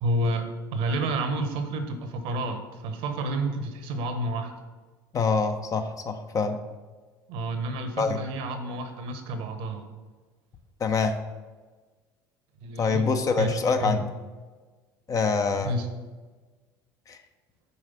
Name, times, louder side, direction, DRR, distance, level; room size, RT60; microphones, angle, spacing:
voice 1, 0.0-4.5 7.3-9.8 12.6-13.0 13.4-14.0 15.6-15.9, right 1 dB, 55° right, 7 dB, 0.9 m, -30 dB
voice 2, 5.1-6.6 8.0-8.2 10.8-11.2 12.8-14.1 15.1-15.7 17.1-17.2, left 4 dB, 30° left, 7 dB, 0.6 m, -25 dB
5.5 x 4.8 x 5.9 m, 1.3 s
figure-of-eight pair, 65°, 11 cm